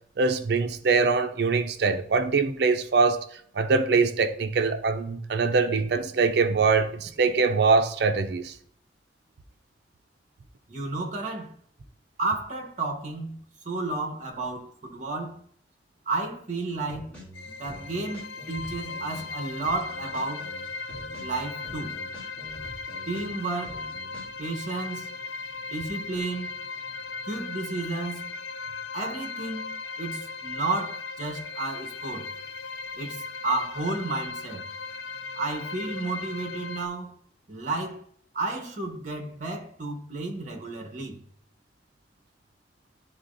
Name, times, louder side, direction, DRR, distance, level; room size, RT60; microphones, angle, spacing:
voice 1, 0.2-3.3 3.5-8.5, right 4 dB, 60° right, 0.5 m, -23 dB
voice 2, 10.7-11.5 12.2-15.4 16.1-17.2 17.5-20.5 21.2-21.9 23.1-23.8 24.4-25.1 25.7-26.5 27.3-28.3 28.9-32.3 33.0-34.6 35.3-37.1 37.5-38.0 38.3-41.2, right 3 dB, 45° right, 1.1 m, -32 dB
sound 1, 16.9-19.3 19.6-23.3 23.6-24.2, equal, 5° left, 2.4 m, -45 dB
sound 2, 17.3-36.9, left 4 dB, 75° left, 0.4 m, -37 dB
11.0 x 3.8 x 2.5 m
head